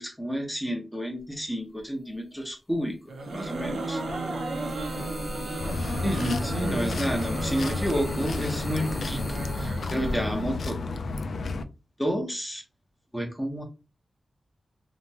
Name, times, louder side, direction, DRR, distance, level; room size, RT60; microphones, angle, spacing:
voice 1, 0.0-4.0 6.0-9.2 9.5-10.8 12.0-12.6 13.1-13.6, equal, 5° left, 2 dB, 0.8 m, -30 dB
sound 1, 1.8-1.9 3.2-11.2, left 1 dB, 30° left, 0.9 m, -40 dB
sound 2, 3.1-10.4, right 2 dB, 85° right, 0.5 m, -34 dB
voice 2, 3.5-6.9, right 2 dB, 30° right, 2 dB, 0.6 m, -38 dB
sound 3, 5.6-11.6, left 3 dB, 70° left, 0.3 m, -32 dB
2.8 x 2.1 x 2.7 m, 0.29 s
wide cardioid pair, 110°, 0 cm